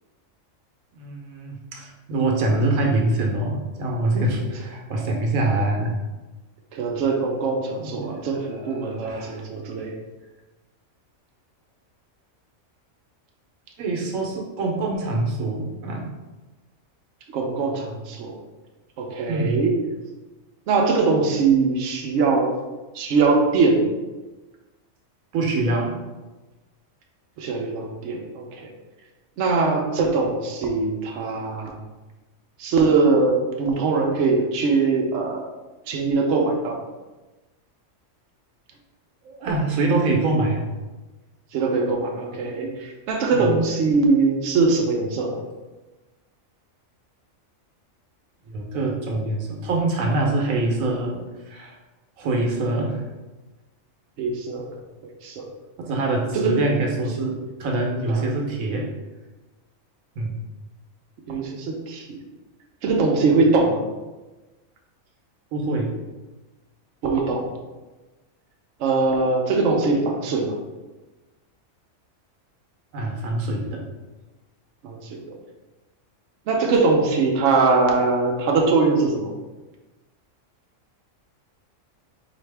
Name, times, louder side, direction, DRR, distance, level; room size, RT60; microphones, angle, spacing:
voice 1, 0.9-6.0 7.8-9.4 13.8-16.1 19.2-19.6 25.3-25.9 39.2-40.7 43.3-43.4 48.5-51.2 51.5-51.8 52.2-53.0 55.8-58.9 60.2-60.4 61.3-61.4 65.5-65.9 72.9-73.8, right 2 dB, 90° right, 0 dB, 1.2 m, -25 dB
voice 2, 6.7-10.0 17.3-18.3 19.0-19.7 20.7-22.5 22.9-23.9 27.4-28.7 29.4-31.8 32.6-35.5 35.9-36.8 41.5-45.4 54.2-54.7 55.2-55.5 56.3-57.0 58.1-58.2 61.3-62.2 62.8-63.8 67.0-67.4 68.8-70.6 74.8-75.2 76.5-79.3, right 4 dB, 65° right, 0 dB, 0.9 m, -22 dB
4.1 x 2.8 x 3.3 m, 1.1 s
omnidirectional pair, 1.4 m